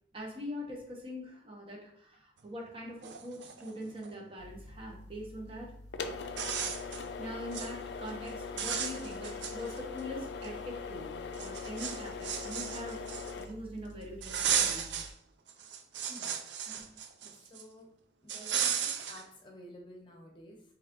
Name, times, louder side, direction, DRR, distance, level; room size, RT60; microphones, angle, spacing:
voice 1, 0.1-5.7 6.8-13.1 13.4-14.9 16.7-16.9, equal, 30° right, 0 dB, 1.0 m, -43 dB
sound 1, 2.7-2.8 3.0-4.1 5.6-5.7 6.2-7.0 7.4-7.7 8.1-8.3 8.6-10.0 10.4-10.5 11.3-13.5 14.2-15.1 15.5-17.6 18.3-19.2, right 8 dB, 80° right, 0.5 m, -35 dB
sound 2, 4.4-15.1, left 4 dB, 75° left, 0.4 m, -42 dB
voice 2, 16.1-16.4 17.2-17.9 18.2-20.6, equal, 25° left, 1 dB, 0.9 m, -51 dB
4.7 x 3.3 x 3.0 m, 0.66 s
head